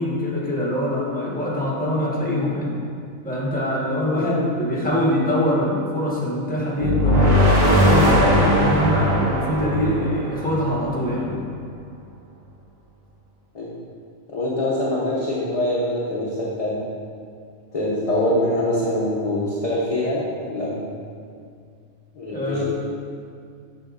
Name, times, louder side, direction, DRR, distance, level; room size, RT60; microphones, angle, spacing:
voice 1, 0.0-2.7 3.2-7.3 7.8-11.4 22.3-22.6, left 1 dB, 5° left, -6 dB, 1.3 m, -23 dB
sound 1, 6.8-10.9, equal, 35° right, 1.1 m, -19 dB
voice 2, 14.3-16.8 17.7-20.9 22.1-22.6, left 1 dB, 30° left, -7 dB, 0.8 m, -24 dB
8.3 x 6.4 x 2.5 m, 2.3 s
omnidirectional pair, 1.4 m